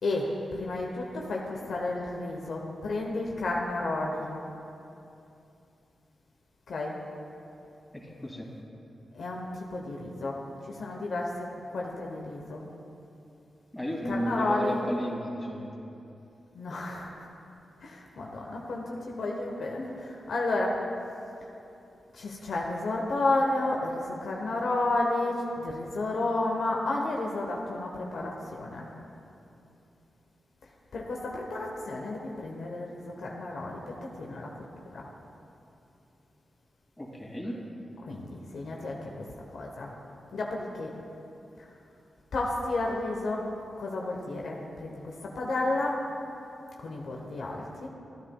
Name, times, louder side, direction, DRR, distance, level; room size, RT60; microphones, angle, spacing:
voice 1, 0.0-4.3 6.7-6.9 9.1-9.5 9.7-10.4 10.7-11.3 11.7-12.6 14.1-14.8 16.5-17.3 17.8-20.7 22.1-28.3 28.6-28.9 30.9-33.8 34.2-34.5 34.9-35.0 38.1-39.1 39.5-39.9 40.3-40.9 42.3-43.4 43.8-46.0 46.8-47.9, left 2 dB, 75° left, -1 dB, 0.9 m, -31 dB
voice 2, 7.9-8.5 13.7-15.7 37.0-37.6, equal, 20° left, -2 dB, 2.3 m, -33 dB
13.5 x 9.9 x 2.3 m, 2.8 s
supercardioid pair, 45°, 0 cm